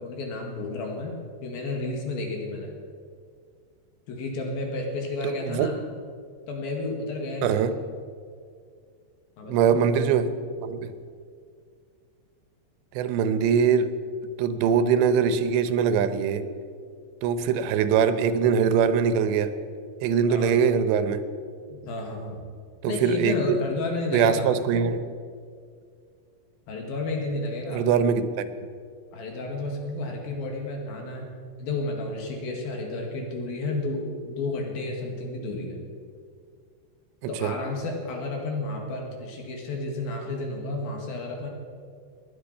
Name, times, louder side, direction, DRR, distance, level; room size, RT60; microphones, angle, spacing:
voice 1, 0.0-2.8 4.1-5.7 6.5-7.7 9.4-9.8 20.3-20.6 21.7-22.5 22.9-24.5 26.7-27.9 29.1-31.3 31.6-35.8 37.3-41.5, left 2 dB, 65° left, 1 dB, 3.4 m, -31 dB
voice 2, 5.2-5.7 7.4-7.7 9.5-10.3 10.6-10.9 13.0-13.9 14.4-16.4 17.2-19.5 20.0-21.2 22.8-23.6 24.1-25.0 27.7-28.5 37.4-37.5, right 7 dB, 85° right, 11 dB, 3.0 m, -22 dB
19.0 x 10.5 x 5.5 m, 2.2 s
omnidirectional pair, 5.0 m